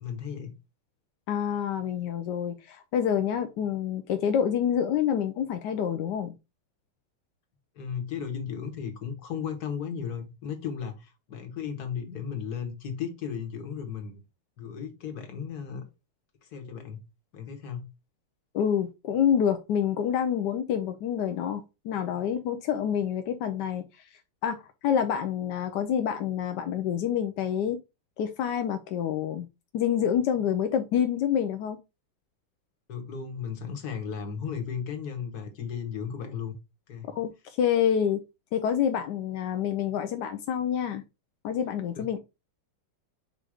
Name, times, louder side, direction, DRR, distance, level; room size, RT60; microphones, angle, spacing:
voice 1, 0.0-0.5 7.8-14.2 14.6-15.9 16.4-17.0 17.3-17.9 32.9-36.6 36.9-37.1 41.9-42.0, left 7 dB, 50° left, 1.7 m, -35 dB
voice 2, 1.3-6.3 18.5-23.8 24.4-27.8 28.2-29.4 29.7-31.8 37.2-38.2 38.5-41.0 41.4-42.2, left 8 dB, 70° left, 1.1 m, -27 dB
7.5 x 2.5 x 4.9 m
omnidirectional pair, 2.3 m